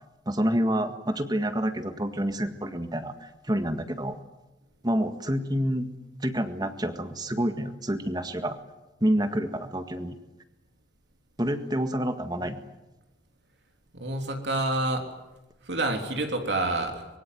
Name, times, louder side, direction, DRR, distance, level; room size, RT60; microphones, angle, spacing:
voice 1, 0.3-4.2 4.8-5.9 6.2-8.6 9.0-10.2 11.4-12.7, equal, 20° right, 8 dB, 1.7 m, -28 dB
voice 2, 13.9-15.0 15.6-17.1, right 2 dB, 65° right, 4 dB, 3.3 m, -28 dB
24.5 x 22.5 x 9.4 m, 1.0 s
head